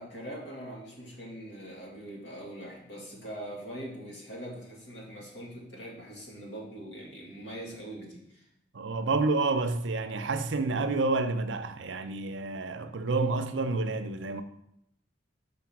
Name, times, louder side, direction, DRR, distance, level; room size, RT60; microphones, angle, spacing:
voice 1, 0.0-8.4, right 1 dB, 75° left, 2.3 m, -42 dB
voice 2, 8.7-14.4, right 3 dB, 80° right, 0.6 m, -29 dB
5.4 x 5.1 x 5.8 m
head